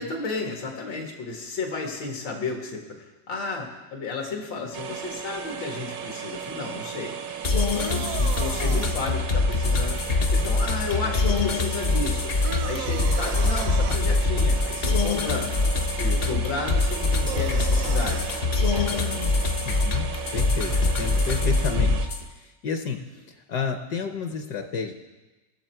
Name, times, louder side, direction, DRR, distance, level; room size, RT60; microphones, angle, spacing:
voice 1, 0.0-7.1 7.7-12.3 12.6-15.5 16.0-18.4 18.7-18.9 20.7-21.1, left 4 dB, 90° left, 1 dB, 2.5 m, -33 dB
sound 1, 4.7-22.1, right 8 dB, 90° right, 1.7 m, -36 dB
sound 2, 7.4-22.2, left 3 dB, 50° left, 0.7 m, -24 dB
sound 3, 7.4-9.0 12.4-14.0 17.3-18.3, right 9 dB, 65° right, 0.8 m, -35 dB
voice 2, 18.9-19.3 19.6-20.1 20.3-24.9, left 6 dB, 65° left, 5 dB, 1.3 m, -31 dB
19.0 x 7.0 x 4.5 m, 1.1 s
omnidirectional pair, 2.0 m